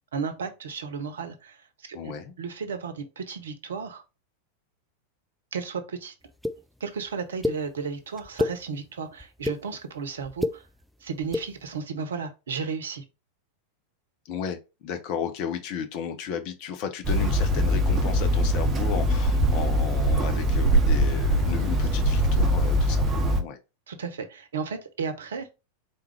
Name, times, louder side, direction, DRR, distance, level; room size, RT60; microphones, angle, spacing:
voice 1, 0.1-2.0 2.4-4.0 5.5-6.1 6.8-10.6 11.0-13.0 23.9-25.5, right 5 dB, 65° right, 0.8 m, -34 dB
voice 2, 1.9-2.3 14.2-23.6, left 7 dB, 45° left, 0.8 m, -34 dB
sound 1, 6.4-6.5 7.4-7.6 8.2-8.5 9.2-9.6 10.2-10.5 11.2-11.4, left 2 dB, ahead, 0.4 m, -26 dB
Hammer, 17.0-23.4, equal, 25° right, 0.8 m, -22 dB
4.3 x 3.6 x 3.2 m
figure-of-eight pair, 90°, 0 cm